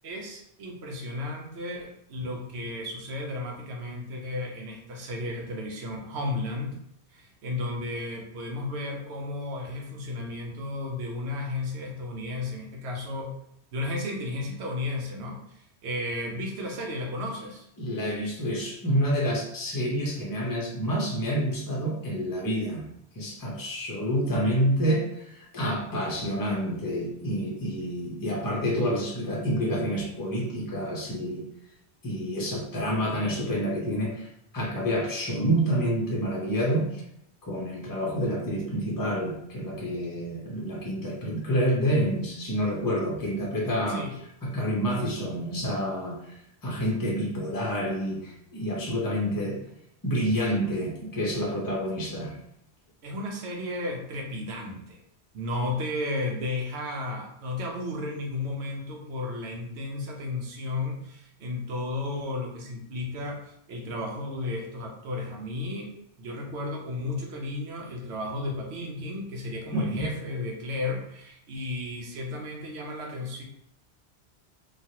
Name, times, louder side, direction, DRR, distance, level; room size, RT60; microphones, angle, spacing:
voice 1, 0.0-6.8 7.1-13.3 13.7-17.7 43.9-44.1 53.0-55.0 55.3-65.9 66.2-73.4, left 2 dB, 70° right, 1 dB, 0.9 m, -33 dB
voice 2, 17.8-22.8 23.1-31.4 32.0-34.3 34.5-37.0 37.4-44.0 44.4-46.4 46.6-49.6 50.0-52.3 69.7-70.1, equal, 20° left, -3 dB, 0.6 m, -28 dB
3.1 x 2.3 x 2.7 m, 0.76 s
omnidirectional pair, 1.2 m